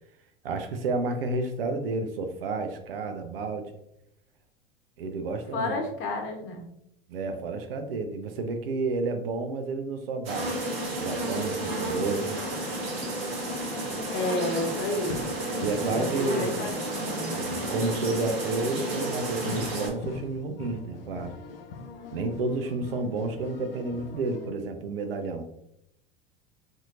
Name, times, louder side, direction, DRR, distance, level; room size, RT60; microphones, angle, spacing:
voice 1, 0.4-3.7 5.0-5.8 7.1-10.5 11.0-12.3 15.6-16.6 17.3-21.3 22.1-25.5, right 3 dB, 75° right, 6 dB, 0.6 m, -31 dB
voice 2, 5.5-6.7 14.1-15.2 15.9-17.3, left 2 dB, 45° left, 3 dB, 1.0 m, -31 dB
sound 1, 10.2-19.9, right 1 dB, 45° right, 1.5 m, -31 dB
sound 2, 11.0-24.5, left 3 dB, 75° left, 0.6 m, -44 dB
4.2 x 2.7 x 2.5 m, 0.77 s
hypercardioid pair, 80°, 29 cm